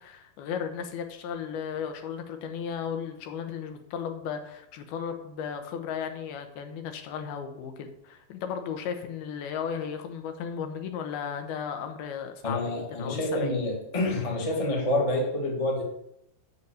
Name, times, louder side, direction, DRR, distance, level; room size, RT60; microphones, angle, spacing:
voice 1, 0.0-13.5, left 7 dB, 85° left, 6 dB, 2.9 m, -35 dB
voice 2, 12.4-15.8, left 1 dB, 20° left, -1 dB, 0.8 m, -27 dB
8.2 x 6.8 x 7.2 m, 0.81 s
omnidirectional pair, 4.4 m